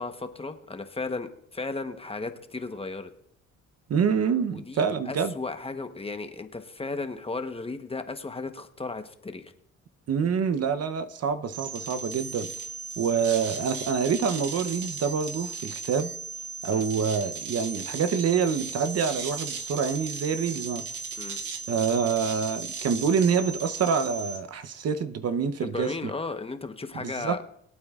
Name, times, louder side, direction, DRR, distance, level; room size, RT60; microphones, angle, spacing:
voice 1, 0.0-3.1 4.5-9.5 16.7-16.9 21.2-21.4 25.7-27.4, left 3 dB, 20° left, 8 dB, 1.0 m, -35 dB
voice 2, 3.9-5.3 10.1-12.5 13.0-16.1 16.6-20.9 21.7-25.9 26.9-27.4, right 6 dB, 55° right, 11 dB, 0.8 m, -26 dB
sound 1, 11.5-24.4, right 5 dB, 80° right, 1.2 m, -36 dB
22.0 x 8.7 x 2.4 m, 0.69 s
cardioid pair, 90°, 30 cm